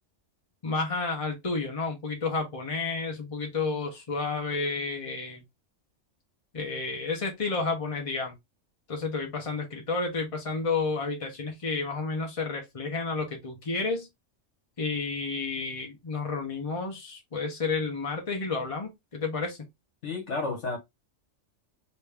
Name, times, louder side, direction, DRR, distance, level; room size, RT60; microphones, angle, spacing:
voice 1, 0.6-5.4 6.5-8.4 8.9-14.1 14.8-19.6, left 4 dB, 30° left, 1.0 m, -31 dB
voice 2, 20.0-20.8, left 3 dB, 70° left, 1.5 m, -31 dB
3.2 x 2.7 x 3.3 m
omnidirectional pair, 1.3 m